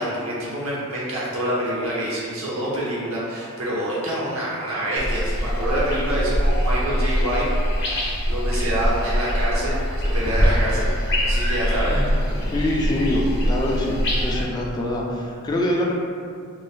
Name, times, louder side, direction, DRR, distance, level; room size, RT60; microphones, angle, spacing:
voice 1, 0.0-10.9 11.2-12.0, right 1 dB, 65° right, -6 dB, 0.6 m, -26 dB
sound 1, 5.0-14.4, equal, 55° left, 0.7 m, -23 dB
voice 2, 11.9-15.9, left 1 dB, 20° left, -2 dB, 0.3 m, -25 dB
2.5 x 2.1 x 3.7 m, 2.3 s
head